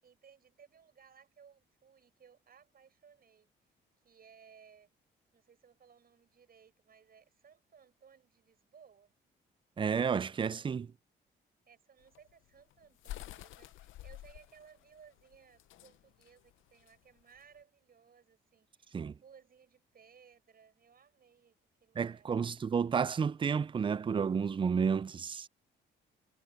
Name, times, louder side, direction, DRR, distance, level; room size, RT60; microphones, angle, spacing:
voice 1, 0.0-3.5 4.0-4.9 5.3-9.1 11.7-22.3, right 7 dB, 50° right, 7.4 m, -61 dB
voice 2, 9.8-10.9 18.9-19.1 22.0-25.5, right 6 dB, 25° right, 0.4 m, -31 dB
sound 1, 12.0-17.6, left 14 dB, 80° left, 0.7 m, -49 dB
cardioid pair, 90°, 20 cm